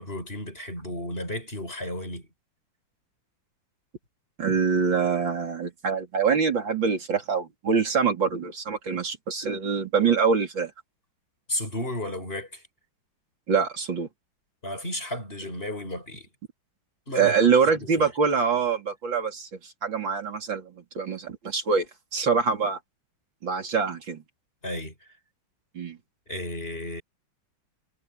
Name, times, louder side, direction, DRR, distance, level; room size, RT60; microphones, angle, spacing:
voice 1, 0.0-2.3 11.5-12.6 14.6-16.3 17.1-17.5 17.8-18.1 24.6-24.9 26.3-27.0, left 1 dB, 25° left, 7.2 m, -33 dB
voice 2, 4.4-10.7 13.5-14.1 17.1-21.9 22.1-22.8 23.4-24.2 25.7-26.0, right 5 dB, 70° right, 4.1 m, -24 dB
omnidirectional pair, 2.2 m